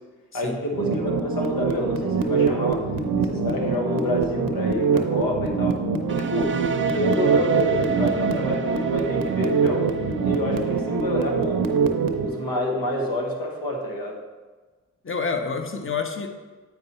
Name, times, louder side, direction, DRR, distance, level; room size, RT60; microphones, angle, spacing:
voice 1, 0.3-2.9 3.2-5.8 6.1-6.6 6.9-9.9 10.2-11.7 12.2-14.2, left 1 dB, 90° left, 1 dB, 1.2 m, -28 dB
sound 1, 0.7-12.3, right 5 dB, 90° right, 0.7 m, -24 dB
sound 2, 3.5-12.4, left 2 dB, 60° left, 1.4 m, -44 dB
sound 3, 6.1-13.8, right 7 dB, 35° right, 0.5 m, -30 dB
voice 2, 15.0-16.3, left 5 dB, 40° left, 5 dB, 1.0 m, -28 dB
8.6 x 4.7 x 4.2 m, 1.3 s
cardioid pair, 45°, 33 cm